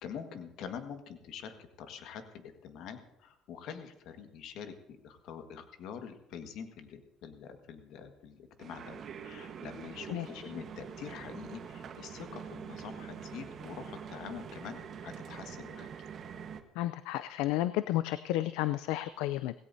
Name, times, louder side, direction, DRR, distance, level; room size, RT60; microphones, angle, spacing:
voice 1, 0.0-15.9, left 7 dB, 70° left, 6 dB, 1.6 m, -45 dB
sound 1, 8.6-16.6, right 7 dB, 50° right, 1.3 m, -45 dB
voice 2, 10.1-10.4 16.8-19.5, left 14 dB, 90° left, 14 dB, 0.4 m, -32 dB
18.0 x 16.5 x 2.7 m, 0.87 s
cardioid pair, 105°, 0 cm